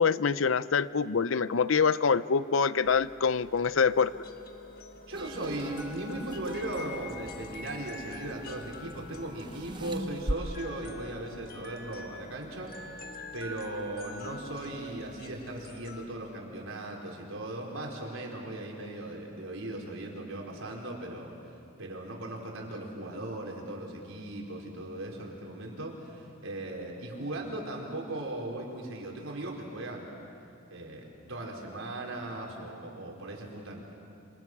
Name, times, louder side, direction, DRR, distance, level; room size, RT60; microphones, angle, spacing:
voice 1, 0.0-4.1, left 5 dB, 80° left, 16 dB, 0.6 m, -25 dB
sound 1, 2.8-16.1, left 3 dB, 45° left, 1.4 m, -46 dB
sound 2, 5.1-10.3, right 1 dB, 20° right, 0.8 m, -40 dB
voice 2, 5.1-21.3 21.8-30.1 30.7-33.8, right 1 dB, 85° right, -1 dB, 4.6 m, -38 dB
27.5 x 26.5 x 6.2 m, 2.6 s
head